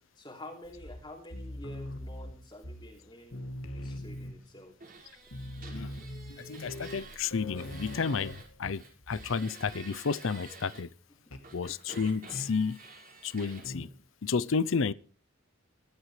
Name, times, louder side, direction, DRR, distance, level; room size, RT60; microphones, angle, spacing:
voice 1, 0.2-4.7, left 1 dB, 20° left, 3.4 m, -48 dB
sound 1, 0.6-3.1 3.3-4.6 5.0-5.1 5.3-9.4 9.6-10.0 11.3-11.5 12.3-12.7 13.6-14.0, left 1 dB, 85° left, 2.4 m, -42 dB
sound 2, 4.8-8.5 8.7-10.8 11.4-13.7, right 4 dB, 45° right, 5.2 m, -50 dB
voice 2, 6.3-10.9 11.5-12.8 13.2-13.9 14.2-14.9, left 5 dB, 70° left, 0.6 m, -31 dB
22.0 x 12.5 x 3.2 m
head